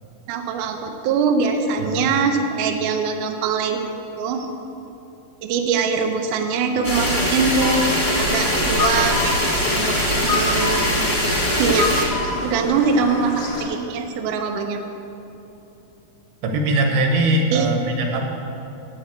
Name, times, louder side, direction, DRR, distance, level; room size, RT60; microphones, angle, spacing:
voice 1, 0.3-3.8 4.2-4.5 5.4-7.9 8.2-10.0 10.2-11.2 11.6-11.9 12.4-14.8 17.5-17.7, right 5 dB, 75° right, 4 dB, 2.0 m, -22 dB
sound 1, 6.8-12.0, equal, 15° left, 1.6 m, -22 dB
sound 2, 7.6-13.6, left 3 dB, 85° left, 0.9 m, -28 dB
voice 2, 16.4-18.3, right 2 dB, 90° right, 2 dB, 3.2 m, -20 dB
9.5 x 7.0 x 8.2 m, 2.9 s
omnidirectional pair, 4.3 m